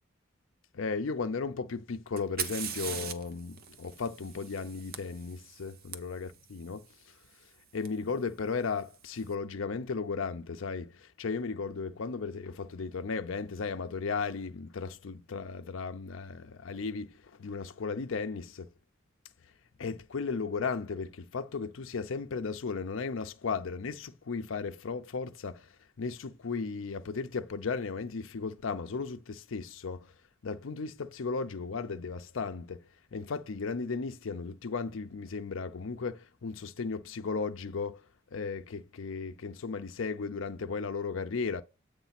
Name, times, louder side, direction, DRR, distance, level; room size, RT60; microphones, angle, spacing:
voice 1, 0.7-6.9 7.7-18.7 19.8-25.7 26.0-30.1 30.4-32.8 33.1-38.0 38.3-41.6, left 4 dB, 70° left, 0.6 m, -35 dB
Fire, 2.2-6.0 7.9-8.0 8.8-9.2, right 7 dB, 50° right, 0.8 m, -40 dB
8.1 x 3.2 x 5.8 m
head